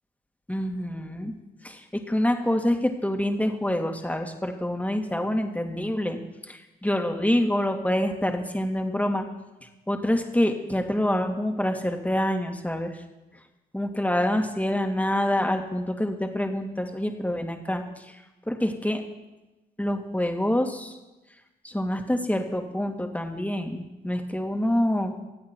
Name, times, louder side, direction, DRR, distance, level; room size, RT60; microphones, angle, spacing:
voice 1, 0.5-1.3 1.6-6.2 6.5-9.3 9.9-13.0 13.7-18.2 18.5-19.0 19.8-21.0 21.6-25.1, left 1 dB, 5° left, 4 dB, 2.4 m, -26 dB
24.0 x 8.4 x 4.6 m, 1.0 s
hypercardioid pair, 45°, 20 cm